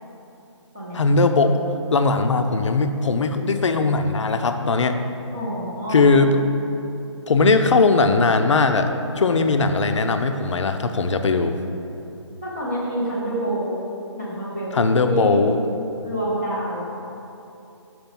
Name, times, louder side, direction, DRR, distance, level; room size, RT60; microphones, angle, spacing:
voice 1, 0.9-1.5 1.9-5.0 5.9-6.5 7.3-11.5 14.7-15.6, left 3 dB, 70° left, 7 dB, 0.6 m, -19 dB
voice 2, 5.3-6.0 12.4-13.8 14.2-15.4 15.7-16.8, right 1 dB, 10° right, -12 dB, 0.3 m, -27 dB
6.0 x 4.9 x 5.4 m, 2.9 s
hypercardioid pair, 170°, 16 cm